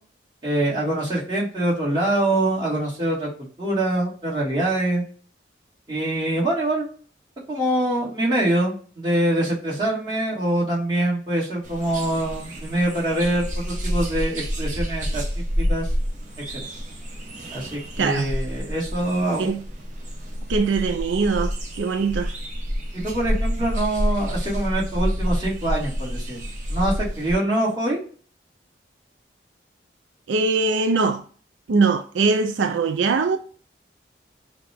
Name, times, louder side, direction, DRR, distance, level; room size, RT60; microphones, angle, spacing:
voice 1, 0.4-3.3 3.6-5.0 5.9-6.9 7.5-15.2 15.6-15.9 16.5-16.7 17.5-19.5 20.8-20.9 22.9-26.4 26.7-28.0, right 1 dB, 25° right, 1.8 m, -24 dB
sound 1, 11.6-27.3, equal, 45° right, 0.8 m, -28 dB
voice 2, 18.0-18.3 19.4-19.6 20.5-22.3 30.3-31.2 31.7-33.4, right 4 dB, 90° right, 0.4 m, -22 dB
5.6 x 2.3 x 3.4 m
head